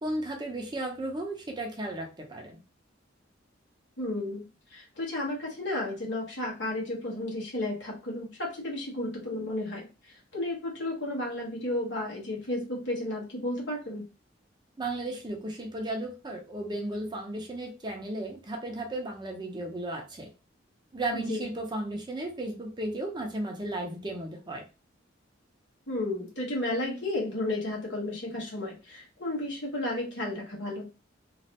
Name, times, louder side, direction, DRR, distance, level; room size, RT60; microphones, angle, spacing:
voice 1, 0.0-2.6 14.8-20.3 20.9-24.6, right 1 dB, 25° right, 1 dB, 0.7 m, -34 dB
voice 2, 4.0-4.4 4.7-14.0 21.1-21.4 25.9-30.9, left 1 dB, 70° left, -2 dB, 1.5 m, -33 dB
3.1 x 2.5 x 2.9 m, 0.30 s
head